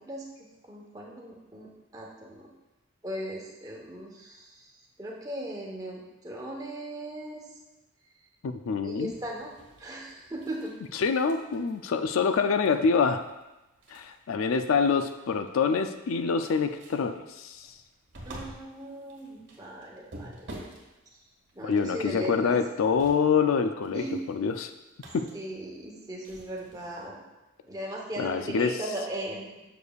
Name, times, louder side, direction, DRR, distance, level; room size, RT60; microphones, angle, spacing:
voice 1, 0.0-2.5 3.0-4.7 5.0-7.4 8.8-9.5 9.8-10.7 18.3-20.8 21.5-22.6 23.9-24.2 25.3-27.2 27.6-29.6, right 1 dB, 15° right, -2 dB, 1.0 m, -38 dB
voice 2, 8.4-9.1 11.0-13.2 13.9-17.7 21.6-24.7 25.1-25.3 28.2-28.8, left 5 dB, 70° left, 8 dB, 0.4 m, -26 dB
sound 1, 9.1-27.1, right 1 dB, 60° right, 1.3 m, -51 dB
6.9 x 6.5 x 2.3 m, 1.0 s
head